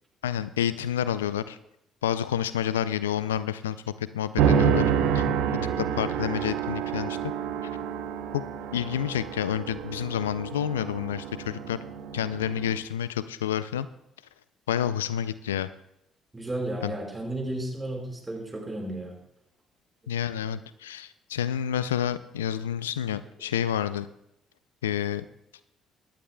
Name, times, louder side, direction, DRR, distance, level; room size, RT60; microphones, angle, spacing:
voice 1, 0.2-1.6 2.0-4.8 5.1-5.2 5.8-7.3 8.3-8.4 8.7-11.8 12.1-13.9 14.7-15.7 16.8-16.9 20.1-24.1 24.8-25.2, left 10 dB, 90° left, 15 dB, 0.3 m, -29 dB
sound 1, 4.4-12.8, right 8 dB, 75° right, 0.9 m, -28 dB
voice 2, 16.3-19.2, right 1 dB, 20° right, 0 dB, 4.7 m, -33 dB
18.0 x 11.5 x 2.2 m, 0.80 s
hypercardioid pair, 50°, 0 cm